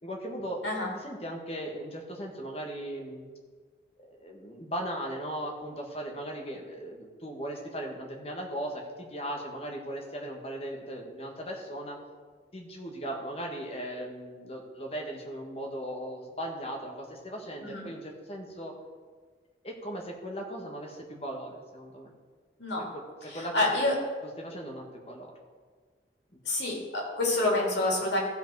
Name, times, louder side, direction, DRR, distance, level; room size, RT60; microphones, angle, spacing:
voice 1, 0.0-0.6 0.9-3.2 4.0-12.0 12.5-18.7 19.6-22.1 22.9-23.0 23.3-23.5 24.4-25.3 26.3-26.4, right 1 dB, 35° left, 0 dB, 1.5 m, -38 dB
voice 2, 23.3-23.9 26.4-28.2, left 2 dB, 85° left, -3 dB, 3.1 m, -27 dB
15.0 x 5.1 x 4.7 m, 1.5 s
head